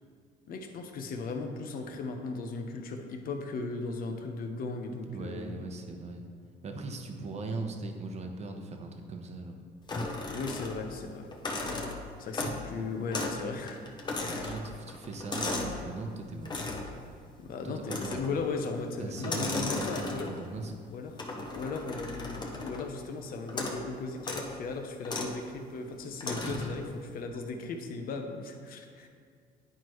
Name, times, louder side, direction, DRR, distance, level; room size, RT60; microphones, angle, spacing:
voice 1, 0.5-5.6 10.3-11.3 12.2-13.8 14.2-14.5 17.4-20.3 20.9-26.8 27.1-29.1, left 3 dB, 60° left, 5 dB, 0.8 m, -37 dB
voice 2, 5.0-6.2 6.6-9.6 12.4-12.6 14.2-16.6 17.6-18.2 19.0-20.7 26.4-26.7, right 3 dB, 40° right, 4 dB, 0.9 m, -39 dB
sound 1, 9.9-11.0 11.3-12.7 13.1-13.4 13.7-15.8 16.5-16.9 17.8-18.4 19.2-20.5 21.2-22.9 23.5-23.8 24.2-24.5 25.0-25.4 26.2-26.8, left 2 dB, 25° left, 0.9 m, -36 dB
9.9 x 4.5 x 3.1 m, 2.2 s
cardioid pair, 110°, 17 cm